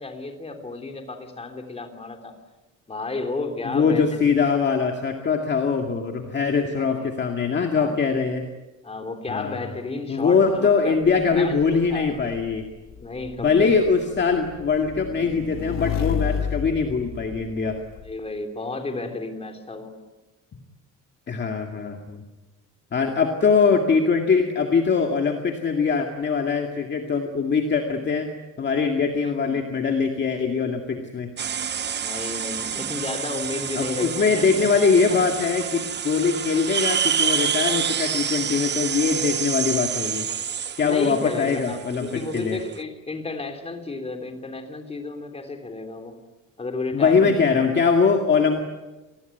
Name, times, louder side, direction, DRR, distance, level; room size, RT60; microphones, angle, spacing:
voice 1, 0.0-2.4 2.9-4.3 6.8-7.1 7.7-7.9 8.8-12.2 13.0-13.8 18.0-19.9 29.2-29.7 32.0-34.7 35.1-35.2 40.8-46.1 46.6-47.3, left 3 dB, 20° left, 5 dB, 3.4 m, -33 dB
voice 2, 3.6-8.5 9.3-9.6 10.1-12.6 13.4-17.8 21.3-22.2 22.9-28.3 28.6-31.3 33.7-40.3 40.8-42.6 46.9-48.6, left 5 dB, 35° left, 3 dB, 2.2 m, -22 dB
Motorcycle / Engine, 11.1-18.1, left 7 dB, 55° left, 2.0 m, -32 dB
sound 1, 31.4-42.8, right 8 dB, 35° right, 0.9 m, -28 dB
28.0 x 20.0 x 9.2 m, 1.1 s
cardioid pair, 160°, 32 cm